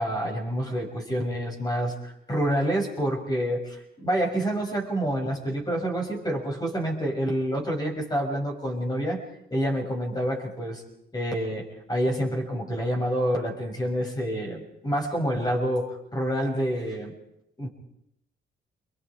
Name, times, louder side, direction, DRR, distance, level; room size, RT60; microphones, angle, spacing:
voice 1, 0.0-9.2 9.5-10.8 11.1-17.1 17.6-17.7, equal, 20° left, 1 dB, 6.7 m, -28 dB
29.5 x 23.5 x 5.0 m, 0.78 s
cardioid pair, 90°, 20 cm